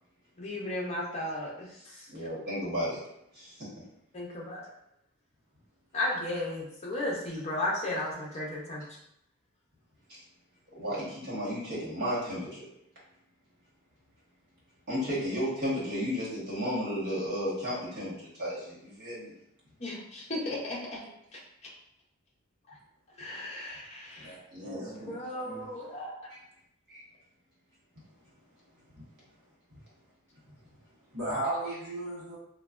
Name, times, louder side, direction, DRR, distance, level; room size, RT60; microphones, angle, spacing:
voice 1, 0.4-2.1 4.1-4.7 5.9-8.9 19.8-21.0 21.3-21.7 23.2-24.4 24.7-26.3, left 1 dB, 30° left, -3 dB, 0.6 m, -35 dB
voice 2, 2.1-3.0 3.3-3.7 10.1-10.2 10.7-12.7 14.9-19.3 24.5-25.1 26.3-26.4 26.9-27.0, equal, 50° right, -8 dB, 1.2 m, -33 dB
voice 3, 24.2-25.0 25.3-25.7 28.9-29.0 29.7-29.8 31.1-32.4, right 1 dB, 85° right, -11 dB, 0.8 m, -36 dB
3.1 x 2.2 x 2.4 m, 0.78 s
head